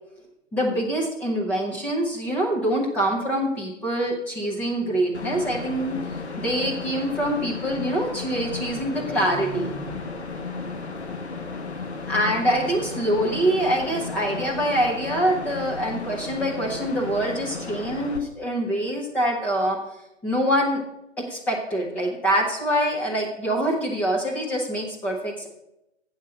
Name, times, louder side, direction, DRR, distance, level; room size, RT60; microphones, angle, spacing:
voice 1, 0.5-6.0 6.4-10.0 12.1-19.8 20.2-20.8 21.3-25.5, right 1 dB, 5° left, -2 dB, 0.7 m, -25 dB
sound 1, 5.1-18.2, left 4 dB, 65° left, 1.2 m, -34 dB
7.8 x 5.4 x 7.2 m, 0.88 s
figure-of-eight pair, 130°, 36 cm